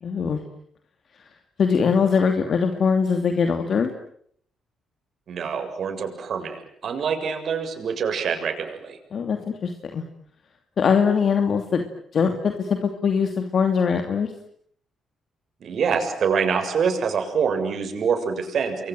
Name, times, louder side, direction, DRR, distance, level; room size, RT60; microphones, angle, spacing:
voice 1, 0.0-0.4 1.6-3.9 9.1-10.0 10.8-11.8 12.1-14.3, left 6 dB, 55° left, 6 dB, 2.7 m, -22 dB
voice 2, 5.3-9.0 15.6-18.9, right 6 dB, 60° right, 5 dB, 7.2 m, -25 dB
30.0 x 23.5 x 7.9 m, 0.65 s
cardioid pair, 90°, 0 cm